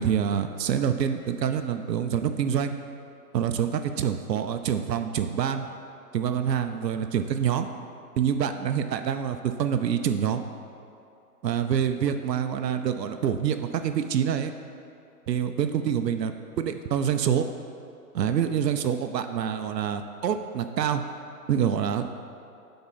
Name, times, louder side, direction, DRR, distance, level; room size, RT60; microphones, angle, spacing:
voice 1, 0.0-2.7 3.3-5.7 6.1-7.7 8.2-10.4 11.4-14.5 15.3-17.5 18.1-21.0 21.5-22.1, right 8 dB, 85° right, 8 dB, 0.6 m, -26 dB
8.1 x 3.9 x 5.5 m, 2.6 s
hypercardioid pair, 170°, 49 cm